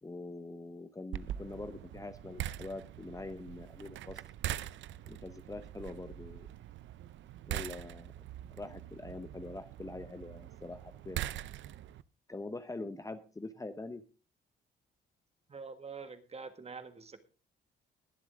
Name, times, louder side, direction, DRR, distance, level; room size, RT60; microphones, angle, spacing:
voice 1, 0.0-4.2 5.1-6.5 7.5-8.1 8.5-11.2 12.3-14.0, left 2 dB, 15° left, 10 dB, 0.9 m, -44 dB
sound 1, 1.1-12.0, right 12 dB, 70° right, 0.6 m, -43 dB
voice 2, 15.5-17.2, right 5 dB, 30° right, 9 dB, 1.7 m, -46 dB
21.0 x 7.4 x 3.6 m, 0.33 s
cardioid pair, 90°, 20 cm